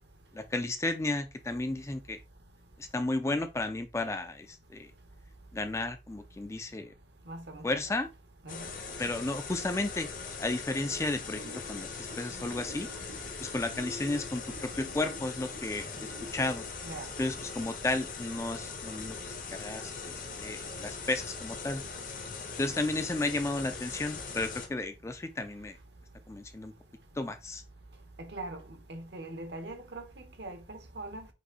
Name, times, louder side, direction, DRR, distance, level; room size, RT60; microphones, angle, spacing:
voice 1, 0.3-2.2 2.8-4.9 5.5-6.9 7.6-8.1 9.0-10.1 10.4-12.9 13.4-16.6 17.2-21.8 22.6-25.8 26.3-26.7 27.2-27.6, left 2 dB, 15° left, 0.3 m, -33 dB
voice 2, 7.3-7.9 8.4-8.7 16.8-17.1 28.2-28.6 28.9-31.3, right 2 dB, 65° right, 1.0 m, -42 dB
sound 1, 8.5-24.7, left 4 dB, 45° left, 0.8 m, -41 dB
sound 2, 11.3-16.4, left 1 dB, 85° right, 2.2 m, -49 dB
4.9 x 2.6 x 3.9 m
head